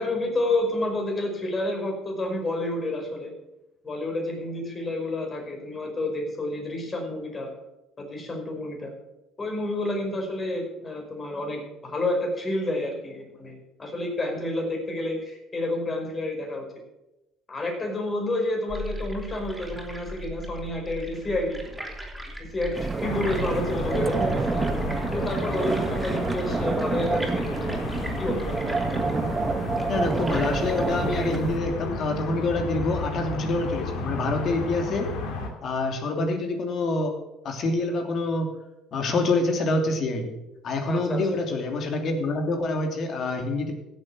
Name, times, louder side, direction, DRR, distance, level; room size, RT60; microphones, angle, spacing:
voice 1, 0.0-3.3 3.8-7.5 8.0-8.9 9.4-16.7 17.5-21.6 22.4-24.7 25.1-27.9 28.2-28.4 40.9-41.3, left 1 dB, 30° left, 2 dB, 5.3 m, -29 dB
sound 1, 18.7-31.8, equal, 5° right, 4.5 m, -38 dB
sound 2, 22.7-31.6, right 4 dB, 25° right, 0.9 m, -28 dB
sound 3, 23.0-35.5, left 3 dB, 70° left, 2.6 m, -33 dB
voice 2, 29.9-35.1 35.6-37.2 37.4-38.5 38.9-40.4 40.6-43.7, left 2 dB, 55° left, 4 dB, 2.8 m, -26 dB
16.0 x 7.6 x 6.4 m, 0.95 s
hypercardioid pair, 65°, 0 cm